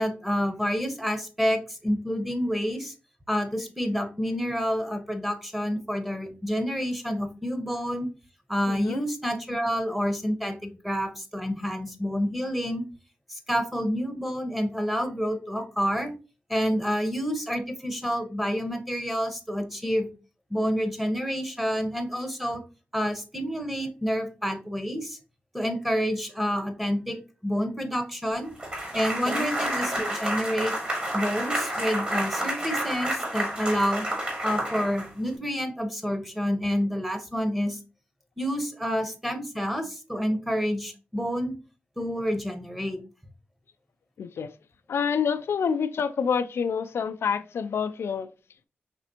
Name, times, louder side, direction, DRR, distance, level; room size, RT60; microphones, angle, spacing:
voice 1, 0.0-2.9 3.3-8.1 8.5-12.8 13.3-16.1 16.5-20.1 20.5-22.6 22.9-25.2 25.5-28.5 28.9-30.7 31.1-34.1 34.4-37.8 38.4-41.6 42.0-43.0, equal, 5° right, 1.1 m, -28 dB
voice 2, 8.7-9.0 29.2-29.5 44.2-44.5 44.9-48.3, left 6 dB, 75° left, 0.4 m, -27 dB
sound 1, 28.6-35.4, right 1 dB, 30° right, 2.3 m, -30 dB
5.0 x 3.3 x 2.9 m
cardioid pair, 50°, 4 cm